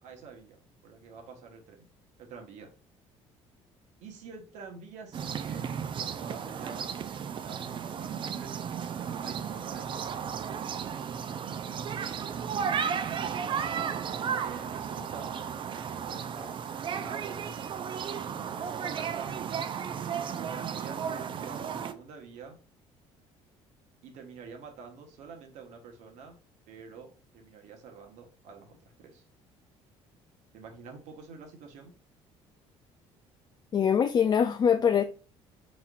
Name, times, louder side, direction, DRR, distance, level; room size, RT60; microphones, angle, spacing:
voice 1, 0.0-1.9 2.2-2.7 4.0-8.6 9.0-10.4 14.4-15.4 15.9-16.6 16.9-17.9 18.4-19.3 20.3-22.6 24.0-26.4 26.7-29.2 30.5-32.0, right 5 dB, 75° right, 1.3 m, -47 dB
sound 1, 5.1-21.9, right 7 dB, 45° right, 0.5 m, -34 dB
voice 2, 33.7-35.0, left 7 dB, 35° left, 0.4 m, -23 dB
4.2 x 4.2 x 2.4 m
cardioid pair, 95°, 12 cm